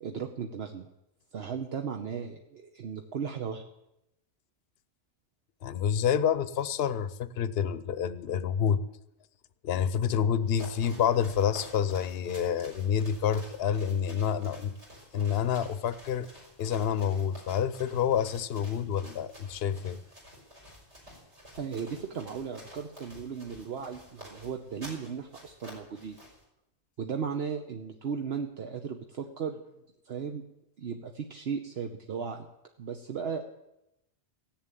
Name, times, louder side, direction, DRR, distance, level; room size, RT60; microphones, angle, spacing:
voice 1, 0.0-0.9 1.3-3.6 21.6-26.2 27.0-29.6 30.0-30.4 30.8-32.5 32.8-33.4, right 6 dB, 65° right, 4 dB, 1.1 m, -36 dB
voice 2, 5.6-8.8 9.6-14.7 15.1-16.3 16.6-20.0, left 8 dB, 65° left, 14 dB, 0.9 m, -28 dB
sound 1, 10.4-26.4, equal, 90° right, 5.4 m, -51 dB
16.0 x 7.4 x 9.1 m, 0.88 s
omnidirectional pair, 1.1 m